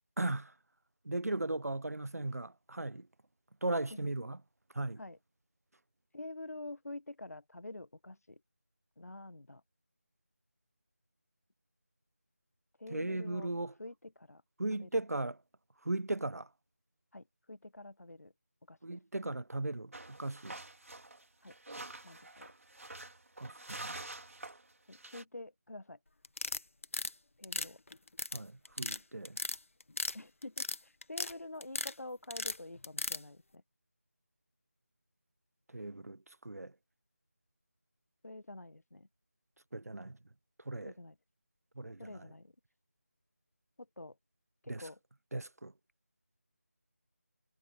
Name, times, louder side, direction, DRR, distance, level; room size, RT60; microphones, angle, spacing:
voice 1, 0.2-0.5 1.0-3.1 3.6-4.4 4.7-5.0 12.9-13.7 14.6-15.4 15.8-16.5 18.8-20.6 23.4-24.0 28.3-29.4 35.7-36.7 39.7-40.2 40.6-40.9 41.8-42.3 44.7-44.8 45.3-45.7, right 2 dB, 90° right, 1.1 m, -37 dB
voice 2, 6.1-8.4 9.0-9.6 12.8-13.5 13.8-14.4 14.8-15.0 17.1-18.3 18.7-19.0 21.4-21.5 22.0-22.5 24.9-26.0 27.4-27.8 30.1-33.6 38.2-39.1 40.8-41.2 42.0-42.5 43.8-44.2 44.6-45.0, left 2 dB, 90° left, 1.5 m, -47 dB
sound 1, 19.9-25.2, right 2 dB, 65° right, 3.1 m, -47 dB
sound 2, 26.2-27.1 27.4-28.4 28.7-29.0 29.3-30.2 30.4-31.3 31.6-31.9 32.3-33.2, left 2 dB, 60° left, 1.8 m, -36 dB
figure-of-eight pair, 175°, 8 cm